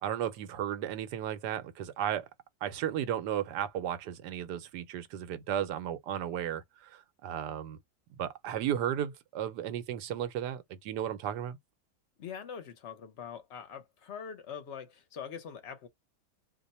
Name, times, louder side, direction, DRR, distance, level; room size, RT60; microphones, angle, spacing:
voice 1, 0.0-2.3 2.6-7.8 8.2-11.6, right 10 dB, 90° right, 1.3 m, -34 dB
voice 2, 12.2-15.9, left 7 dB, 50° left, 1.0 m, -43 dB
2.9 x 2.2 x 4.1 m
omnidirectional pair, 1.7 m